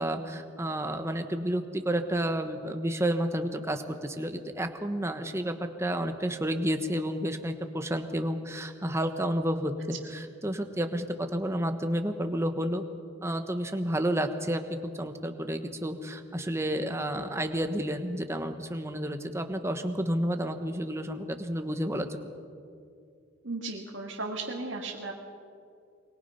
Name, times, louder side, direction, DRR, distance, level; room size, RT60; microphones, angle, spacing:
voice 1, 0.0-5.5 5.8-12.8 13.2-22.2, equal, 15° right, 6 dB, 1.2 m, -31 dB
voice 2, 23.4-25.1, right 2 dB, 70° right, -2 dB, 2.0 m, -35 dB
24.0 x 22.5 x 5.7 m, 2.4 s
head